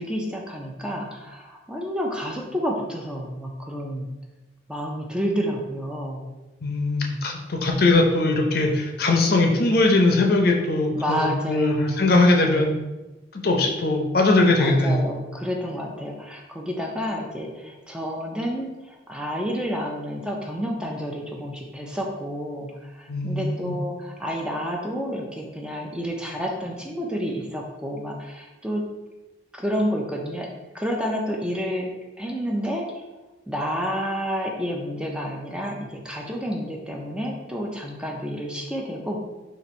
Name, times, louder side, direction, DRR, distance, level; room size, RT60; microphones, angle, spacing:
voice 1, 0.0-4.1 4.7-6.2 10.9-12.1 14.6-28.8 29.5-30.5 30.7-31.9 32.2-32.9 33.5-39.2, equal, 5° right, -1 dB, 0.4 m, -30 dB
voice 2, 6.6-12.7 13.4-15.0 23.1-23.7, left 2 dB, 55° left, 2 dB, 0.6 m, -20 dB
4.1 x 2.6 x 4.2 m, 1.1 s
head